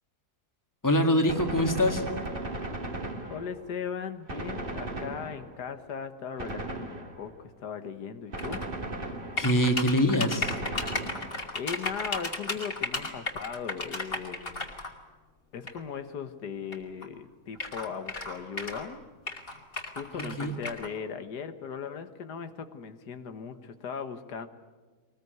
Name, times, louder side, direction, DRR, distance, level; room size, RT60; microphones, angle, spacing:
voice 1, 0.8-2.0 9.4-10.6 20.2-20.5, equal, 10° left, 5 dB, 2.1 m, -24 dB
Gunshot gunfire, 1.3-3.8 4.3-5.7 6.4-7.4 8.3-9.7 10.4-11.6, right 2 dB, 35° right, 2.3 m, -37 dB
voice 2, 3.3-8.6 11.6-14.7 15.5-19.1 19.9-24.5, left 7 dB, 85° left, 9 dB, 1.8 m, -38 dB
sound 1, 8.4-8.7 9.4-14.9 15.7-15.8 16.7-16.8 17.0-17.1 17.5-18.9 19.3-20.9, left 3 dB, 35° left, 2.9 m, -34 dB
22.5 x 20.5 x 9.4 m, 1.4 s
omnidirectional pair, 1.7 m